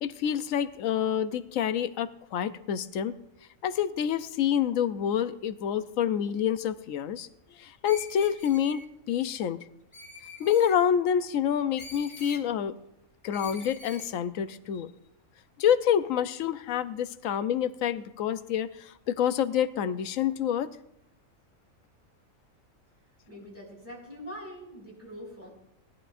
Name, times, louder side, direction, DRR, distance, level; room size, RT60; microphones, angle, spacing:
voice 1, 0.0-3.2 3.6-9.6 10.4-12.8 13.2-14.9 15.6-20.8, left 9 dB, 75° left, 13 dB, 1.0 m, -27 dB
Screech, 7.8-8.9 9.9-10.8 11.8-12.4 13.3-14.1, left 2 dB, 25° left, 1.0 m, -45 dB
voice 2, 23.3-25.5, equal, 10° right, -5 dB, 5.1 m, -43 dB
19.0 x 11.5 x 2.5 m, 0.84 s
omnidirectional pair, 1.5 m